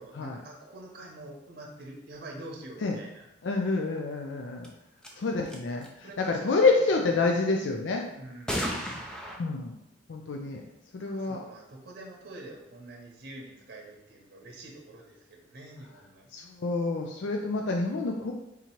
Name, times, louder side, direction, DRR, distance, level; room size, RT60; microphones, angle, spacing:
voice 1, 0.0-3.3 5.1-5.2 6.0-6.7 8.1-8.9 11.0-16.3, right 2 dB, 55° right, -1 dB, 0.9 m, -46 dB
voice 2, 3.4-4.7 5.2-8.1 9.4-9.7 10.1-10.6 10.9-11.4 16.3-18.3, left 3 dB, 75° left, 2 dB, 0.4 m, -28 dB
sound 1, 4.6-4.7 5.0-5.1 5.5-5.9 8.5-9.4, equal, 5° left, 0.5 m, -33 dB
3.7 x 2.9 x 4.4 m, 0.86 s
head